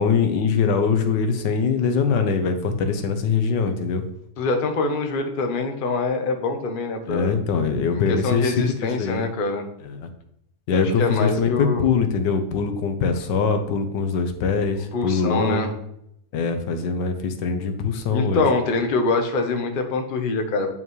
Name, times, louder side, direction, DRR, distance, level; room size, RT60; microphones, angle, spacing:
voice 1, 0.0-4.0 7.1-9.3 9.8-10.1 10.7-15.7 16.3-18.4, left 5 dB, 80° left, 7 dB, 1.5 m, -23 dB
voice 2, 4.4-7.3 7.9-9.6 10.7-11.8 14.9-15.7 18.1-20.7, left 3 dB, 40° left, 5 dB, 0.8 m, -24 dB
8.9 x 5.7 x 3.1 m, 0.76 s
omnidirectional pair, 1.9 m